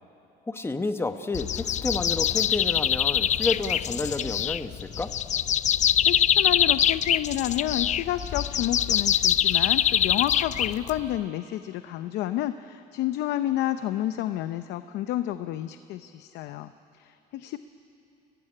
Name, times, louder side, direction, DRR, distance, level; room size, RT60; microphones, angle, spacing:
voice 1, 0.5-5.1, left 3 dB, 15° left, 8 dB, 1.2 m, -30 dB
sound 1, 1.3-11.2, left 10 dB, 45° left, 0.5 m, -24 dB
voice 2, 6.1-16.7 17.0-17.6, left 13 dB, 85° left, 11 dB, 0.7 m, -30 dB
29.5 x 15.5 x 9.9 m, 2.8 s
cardioid pair, 110°, 17 cm